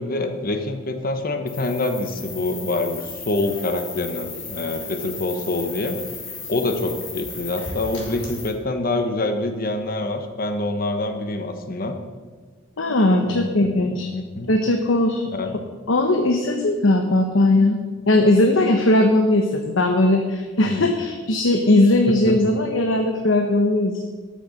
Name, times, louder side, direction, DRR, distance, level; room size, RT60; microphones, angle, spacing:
voice 1, 0.0-6.0 6.5-12.0 13.2-14.5 15.3-15.6 20.7-20.9 22.1-22.4, left 2 dB, 50° left, 7 dB, 1.1 m, -26 dB
sound 1, 1.5-8.5, left 4 dB, 70° left, 4.0 m, -35 dB
voice 2, 12.8-14.1 14.5-15.2 15.9-17.8 18.1-24.0, left 2 dB, 85° left, 4 dB, 1.0 m, -18 dB
12.0 x 6.7 x 6.6 m, 1.4 s
head